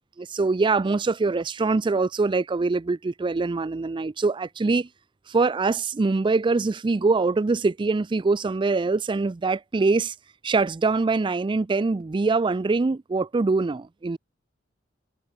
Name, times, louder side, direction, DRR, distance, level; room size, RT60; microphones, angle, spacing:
voice 1, 0.2-4.9 5.3-10.1 10.4-14.2, right 3 dB, 25° right, 0.4 m, -23 dB
head